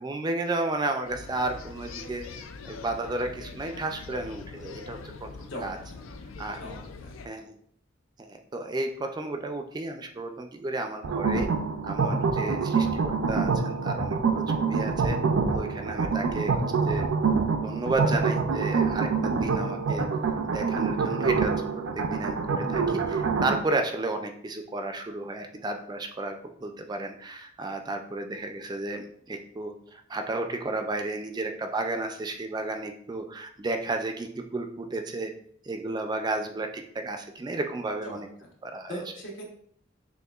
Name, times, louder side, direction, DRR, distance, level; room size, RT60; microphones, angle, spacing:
voice 1, 0.0-2.3 2.6-5.8 6.4-6.6 7.3-7.5 8.2-11.5 11.8-15.2 15.5-17.1 17.6-20.0 20.5-26.4 26.6-35.3 35.6-38.3 38.6-38.9, right 2 dB, 20° right, 5 dB, 0.3 m, -33 dB
sound 1, 1.0-7.3, left 4 dB, 90° left, 0.4 m, -43 dB
voice 2, 5.5-6.0 6.5-7.1 38.0-38.5 38.9-39.4, equal, 70° left, 0 dB, 1.1 m, -40 dB
sound 2, 11.0-23.6, right 4 dB, 85° right, 0.4 m, -26 dB
6.4 x 2.5 x 2.3 m, 0.64 s
head